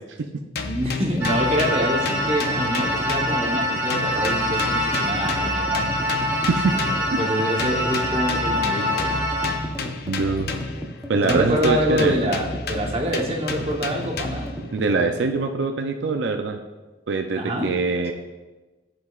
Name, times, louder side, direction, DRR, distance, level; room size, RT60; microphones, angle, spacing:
sound 1, 0.5-3.6 3.9-7.2 7.6-10.9 11.3-14.6, left 4 dB, 60° left, 0.6 m, -31 dB
voice 1, 0.6-5.9 7.2-9.3 11.2-14.5 17.4-17.7, equal, 35° right, 1 dB, 1.0 m, -26 dB
sound 2, 0.8-15.1, equal, ahead, 0.8 m, -35 dB
sound 3, 1.2-9.6, equal, 15° right, 1.5 m, -25 dB
voice 2, 10.0-10.5 11.1-12.1 14.7-16.6 17.1-18.1, right 3 dB, 75° right, 4 dB, 0.5 m, -23 dB
13.0 x 5.1 x 2.4 m, 1.2 s
head